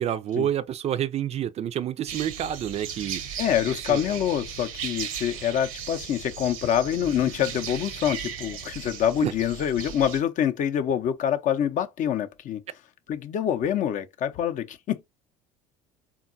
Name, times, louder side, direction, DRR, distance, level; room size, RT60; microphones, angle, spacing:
voice 1, 0.0-3.4 3.7-4.0 9.2-9.3, right 10 dB, 40° right, 0.4 m, -28 dB
sound 1, 2.1-10.2, right 7 dB, 80° right, 0.7 m, -37 dB
voice 2, 3.4-12.6 13.1-15.0, left 9 dB, 50° left, 0.5 m, -26 dB
3.6 x 2.2 x 2.5 m
hypercardioid pair, 75°, 17 cm